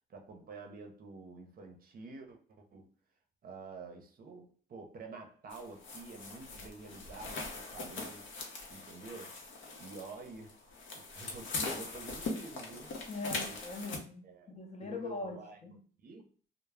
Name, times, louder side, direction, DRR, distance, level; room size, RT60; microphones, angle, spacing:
voice 1, 0.1-2.9 3.4-8.3 8.7-9.4 9.8-10.6 10.9-13.0 13.5-13.6 14.2-14.5 14.8-15.6 16.0-16.3, right 3 dB, 45° right, 0.6 m, -49 dB
sound 1, 5.5-14.0, left 3 dB, 70° left, 0.7 m, -41 dB
voice 2, 13.1-15.7, left 3 dB, 35° left, 0.6 m, -41 dB
2.2 x 2.0 x 3.3 m
cardioid pair, 90°, 20 cm